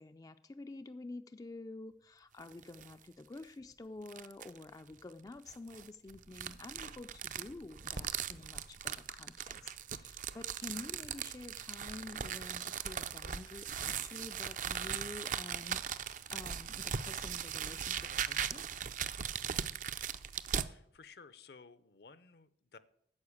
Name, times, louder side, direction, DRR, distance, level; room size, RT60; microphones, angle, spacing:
voice 1, 0.0-18.6, left 2 dB, 20° left, 9 dB, 0.3 m, -49 dB
sound 1, 2.4-2.9 3.4-3.5 4.1-4.6 5.5-20.7, right 8 dB, 45° right, 0.5 m, -39 dB
sound 2, 7.7-13.6, right 1 dB, 70° right, 1.2 m, -56 dB
voice 2, 20.7-22.8, left 5 dB, 60° left, 15 dB, 0.7 m, -56 dB
9.7 x 7.0 x 8.5 m, 0.70 s
head